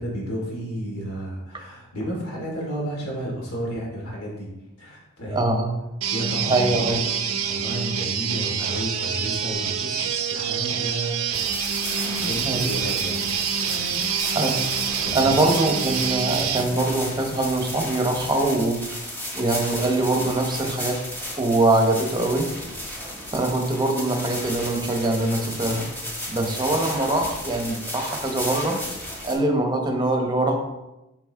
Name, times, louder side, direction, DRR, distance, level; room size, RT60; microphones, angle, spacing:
voice 1, 0.0-4.5 4.8-5.5 6.0-11.8 12.2-13.2 15.0-15.4, equal, 75° left, -3 dB, 2.6 m, -32 dB
voice 2, 5.3-5.8 6.5-7.0 12.4-12.7 14.2-14.7 15.1-19.1 19.3-21.0 21.4-22.6 23.3-25.9 26.3-28.8 29.2-30.5, right 2 dB, 20° right, 3 dB, 0.8 m, -23 dB
sound 1, 6.0-16.7, right 7 dB, 65° right, 0.6 m, -26 dB
sound 2, 11.3-29.3, equal, 10° left, 1.4 m, -34 dB
7.1 x 4.9 x 3.7 m, 0.97 s
head